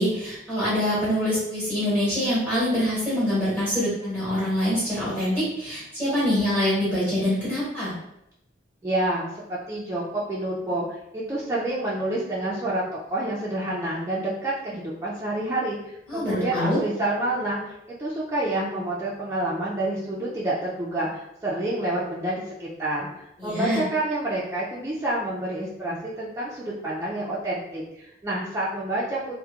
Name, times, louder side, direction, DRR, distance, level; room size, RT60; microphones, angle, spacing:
voice 1, 0.0-7.9 16.1-16.8 23.4-23.8, equal, 10° left, -11 dB, 1.4 m, -25 dB
voice 2, 8.8-23.1 23.4-29.3, right 1 dB, 15° right, -7 dB, 0.3 m, -28 dB
2.8 x 2.1 x 2.3 m, 0.83 s
head